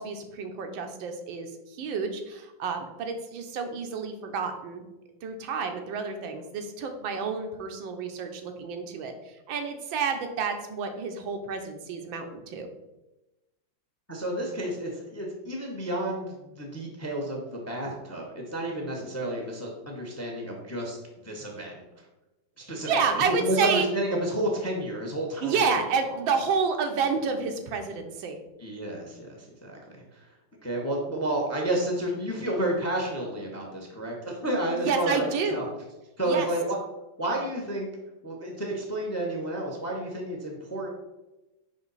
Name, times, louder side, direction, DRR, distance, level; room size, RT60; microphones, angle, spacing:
voice 1, 0.0-4.8 5.2-12.7 22.6-23.9 25.4-28.4 34.7-35.6 36.2-36.5, right 5 dB, 90° right, 5 dB, 1.5 m, -29 dB
voice 2, 14.1-21.8 22.7-25.7 26.1-26.2 28.6-29.8 30.1-30.3 30.6-35.7 36.2-36.8 37.2-37.9 38.2-40.9, right 1 dB, 15° left, 0 dB, 0.6 m, -31 dB
5.2 x 5.0 x 4.1 m, 1.0 s
omnidirectional pair, 2.0 m